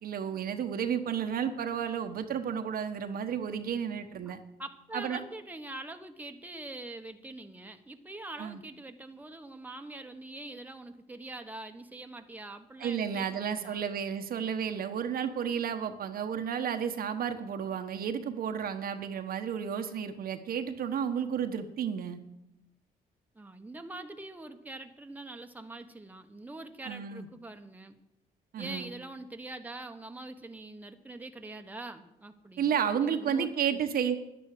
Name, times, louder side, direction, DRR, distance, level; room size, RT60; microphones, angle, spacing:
voice 1, 0.0-4.4 4.9-5.2 8.4-8.6 12.8-22.2 26.8-27.3 28.5-28.9 32.6-34.2, right 8 dB, 70° right, 7 dB, 1.3 m, -32 dB
voice 2, 4.6-13.8 23.3-28.0 28.6-33.8, right 2 dB, 10° right, 5 dB, 1.3 m, -44 dB
10.5 x 10.0 x 6.7 m, 0.87 s
cardioid pair, 85°, 16 cm